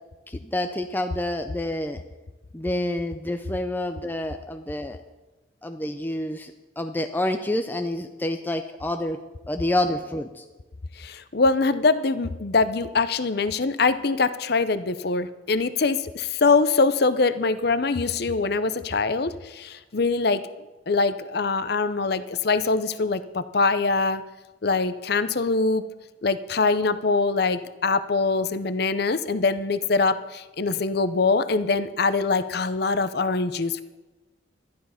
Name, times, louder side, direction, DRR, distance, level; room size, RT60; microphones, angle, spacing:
voice 1, 0.3-2.0 2.5-5.0 5.6-9.2 9.5-10.4, left 1 dB, 10° left, 7 dB, 0.5 m, -28 dB
voice 2, 11.0-20.4 20.9-24.2 24.6-25.8 26.2-33.8, left 4 dB, 55° left, 13 dB, 0.7 m, -23 dB
12.5 x 11.0 x 5.8 m, 1.1 s
head